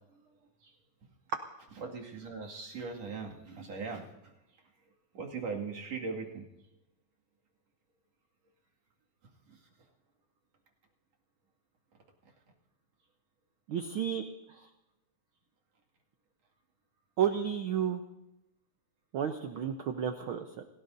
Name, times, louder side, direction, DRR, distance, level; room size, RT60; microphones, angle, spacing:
voice 1, 0.1-0.8 1.7-6.5 9.2-9.7 12.2-12.3, right 4 dB, 60° right, -1 dB, 3.3 m, -41 dB
voice 2, 13.7-14.2 17.2-18.0 19.1-20.6, right 8 dB, 75° right, 6 dB, 1.1 m, -31 dB
28.5 x 17.5 x 2.7 m, 0.93 s
omnidirectional pair, 3.4 m